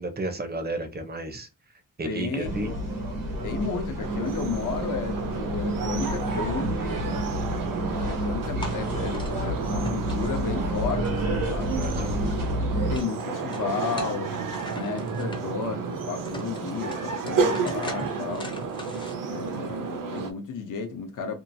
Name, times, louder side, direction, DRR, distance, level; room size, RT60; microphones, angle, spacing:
voice 1, 0.0-1.5 2.0-2.7 11.8-12.1, right 2 dB, 30° right, 0.5 m, -32 dB
voice 2, 2.0-2.8 3.4-7.2 7.9-12.1 12.8-14.4 14.7-18.6 19.3-21.4, left 5 dB, 65° left, 0.6 m, -33 dB
sound 1, 2.4-13.0, right 1 dB, 90° right, 1.1 m, -29 dB
sound 2, 4.0-20.3, right 5 dB, 70° right, 0.6 m, -32 dB
sound 3, 8.6-9.3 9.8-11.6 11.9-13.2 13.5-15.4 15.9-16.0 16.3-19.1, left 1 dB, 15° left, 0.5 m, -41 dB
2.8 x 2.4 x 2.5 m
wide cardioid pair, 155°, 34 cm